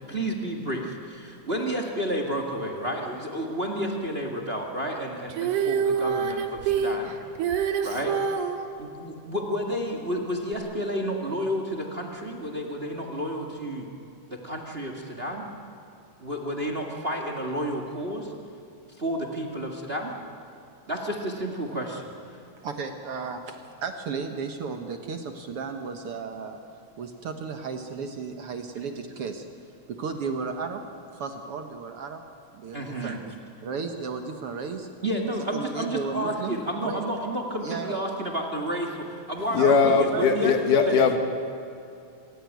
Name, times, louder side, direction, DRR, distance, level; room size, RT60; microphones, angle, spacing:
voice 1, 0.0-7.1 7.8-8.2 8.8-13.9 14.4-15.4 16.2-18.3 19.0-20.1 20.9-22.1 28.7-28.8 32.7-33.2 35.0-41.1, equal, 25° right, 2 dB, 1.5 m, -31 dB
Female singing, 5.3-8.6 10.5-10.6, right 7 dB, 80° right, 2.8 m, -26 dB
voice 2, 22.6-26.6 27.0-29.5 30.0-30.8 31.1-32.2 32.5-33.3 33.6-34.9 35.5-37.0 37.6-38.0 39.6-40.3, right 5 dB, 55° right, 5 dB, 1.8 m, -34 dB
voice 3, 39.5-41.2, left 5 dB, 85° left, 6 dB, 3.1 m, -20 dB
26.0 x 15.5 x 9.4 m, 2.6 s
omnidirectional pair, 3.5 m